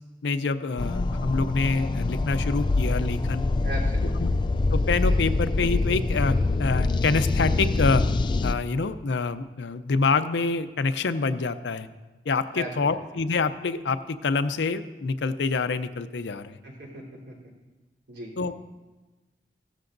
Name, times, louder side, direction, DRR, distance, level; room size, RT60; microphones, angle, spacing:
voice 1, 0.2-3.5 4.2-4.3 4.7-8.0 8.4-11.9 12.3-16.6 18.4-18.6, left 4 dB, 85° left, 11 dB, 0.6 m, -26 dB
sound 1, 0.8-8.5, left 3 dB, 25° left, 0.3 m, -25 dB
voice 2, 3.6-4.4 12.5-13.0 16.6-17.3 18.1-18.3, right 1 dB, 70° right, -3 dB, 3.5 m, -38 dB
16.0 x 12.5 x 2.6 m, 1.2 s
head